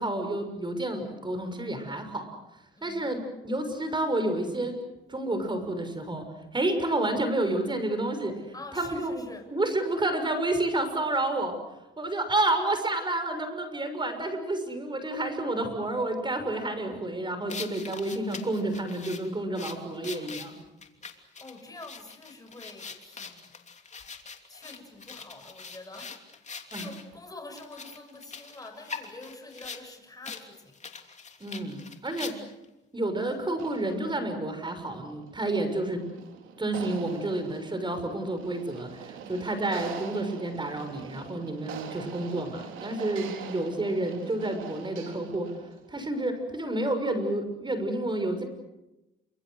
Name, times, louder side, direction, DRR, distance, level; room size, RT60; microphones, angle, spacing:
voice 1, 0.0-2.3 2.8-4.7 5.1-6.2 6.5-8.3 8.7-11.5 12.0-20.6 26.7-26.9 31.4-32.3 32.9-36.1 36.6-45.5 45.9-48.4, right 2 dB, 25° right, 8 dB, 6.5 m, -30 dB
voice 2, 2.8-3.1 8.5-9.5 9.8-9.9 21.4-23.4 23.9-24.1 24.5-26.1 26.7-30.7, left 2 dB, 20° left, 5 dB, 7.1 m, -46 dB
sound 1, 17.5-27.0 27.5-29.9 30.2-30.4 30.7-32.7, left 5 dB, 35° left, 3.0 m, -42 dB
sound 2, 33.6-45.9, right 7 dB, 85° right, 3.6 m, -44 dB
28.5 x 26.0 x 6.6 m, 0.96 s
cardioid pair, 90°, 20 cm